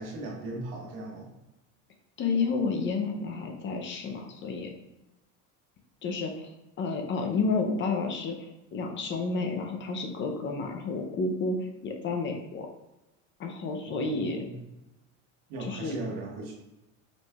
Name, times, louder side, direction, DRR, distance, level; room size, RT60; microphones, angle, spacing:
voice 1, 0.0-1.3 13.9-14.5 15.5-16.5, right 2 dB, 80° right, -2 dB, 1.5 m, -38 dB
voice 2, 2.2-4.8 6.0-12.7 13.4-14.5 15.6-15.9, left 4 dB, 35° left, 3 dB, 0.5 m, -31 dB
5.0 x 3.3 x 2.3 m, 0.94 s
supercardioid pair, 130°, 36 cm